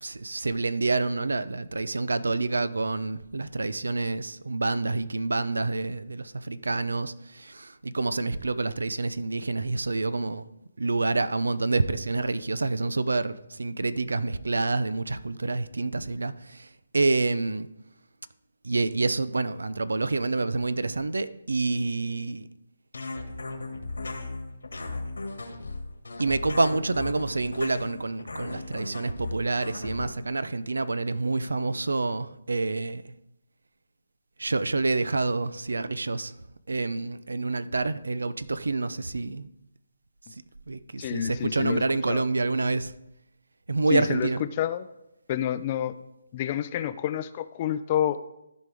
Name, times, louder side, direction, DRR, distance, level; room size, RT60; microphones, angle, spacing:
voice 1, 0.0-10.4 10.8-16.7 16.9-17.7 18.6-22.5 26.2-33.0 34.4-36.3 36.7-39.5 40.7-42.9 43.7-44.4, right 3 dB, 85° right, 0.6 m, -27 dB
sound 1, 22.9-30.0, left 2 dB, 90° left, 1.9 m, -36 dB
voice 2, 41.0-41.8 42.1-42.2 43.9-44.3 44.6-44.9 45.3-46.0 46.3-48.2, left 11 dB, 30° left, 0.5 m, -28 dB
14.5 x 5.1 x 3.5 m
hypercardioid pair, 160°, 0 cm